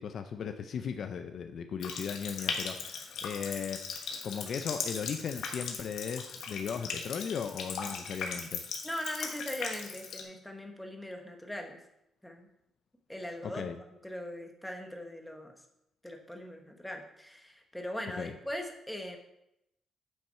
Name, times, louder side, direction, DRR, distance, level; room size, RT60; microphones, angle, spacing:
voice 1, 0.0-3.8 4.2-8.6 13.4-13.8 18.2-18.3, left 7 dB, 50° left, 7 dB, 0.5 m, -37 dB
Water tap faucet, 1.8-10.2, left 5 dB, 85° left, 1.3 m, -38 dB
voice 2, 8.8-11.8 12.2-12.5 13.1-13.6 14.0-15.5 16.0-19.2, equal, 5° left, 3 dB, 0.9 m, -40 dB
9.1 x 5.6 x 4.3 m, 0.83 s
cardioid pair, 165°, 0 cm